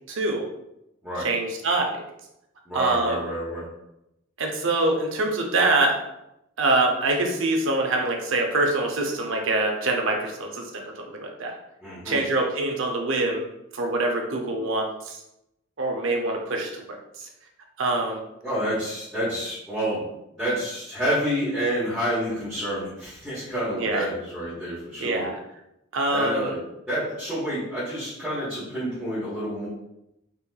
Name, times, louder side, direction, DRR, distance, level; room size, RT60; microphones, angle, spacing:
voice 1, 0.1-0.5 1.2-2.0 2.7-3.2 4.4-6.0 6.6-10.6 11.1-11.5 12.1-13.5 13.7-15.2 15.8-16.8 17.8-18.2 23.7-24.0 25.0-25.3 25.9-26.5, right 2 dB, 70° right, 1 dB, 0.6 m, -24 dB
voice 2, 2.7-3.7 11.8-12.2 18.4-20.0 20.4-25.3 26.1-26.6 26.9-29.7, equal, ahead, -12 dB, 1.0 m, -28 dB
3.4 x 2.9 x 2.3 m, 0.85 s
head